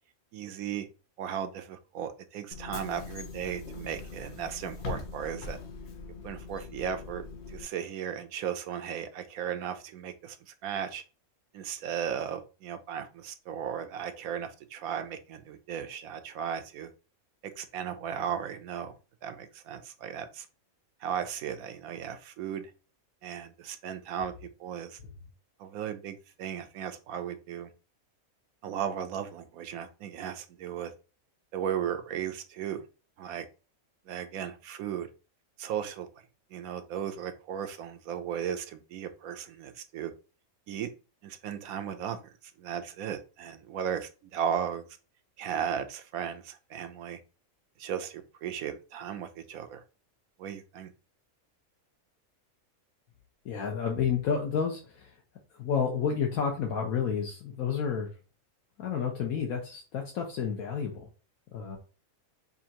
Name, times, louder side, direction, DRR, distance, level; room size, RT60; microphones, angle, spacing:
voice 1, 0.3-0.9 1.2-5.6 6.2-11.0 11.5-16.9 17.4-18.9 19.2-20.5 21.0-22.7 23.2-24.3 24.6-25.0 25.6-27.7 28.6-30.9 31.5-32.8 33.2-33.5 34.1-35.1 35.6-36.1 36.5-40.1 40.7-40.9 41.2-44.9 45.4-47.2 47.8-49.8 50.4-50.9, right 8 dB, 85° right, 8 dB, 1.1 m, -36 dB
Bus / Engine, 2.5-7.6, left 4 dB, 55° left, 0.9 m, -42 dB
voice 2, 53.4-55.2 55.5-58.1 58.8-61.1 61.5-61.8, left 7 dB, 80° left, 1 dB, 1.3 m, -30 dB
5.5 x 2.5 x 2.8 m, 0.34 s
omnidirectional pair, 1.5 m